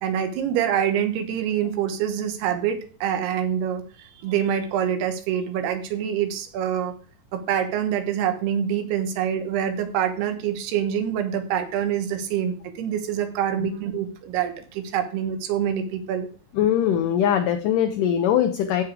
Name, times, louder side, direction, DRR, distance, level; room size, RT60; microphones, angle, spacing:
voice 1, 0.0-6.9 7.3-16.3, right 9 dB, 90° right, 8 dB, 3.2 m, -26 dB
voice 2, 16.5-18.8, left 9 dB, 75° left, 7 dB, 2.1 m, -21 dB
14.5 x 5.2 x 4.7 m, 0.39 s
omnidirectional pair, 4.4 m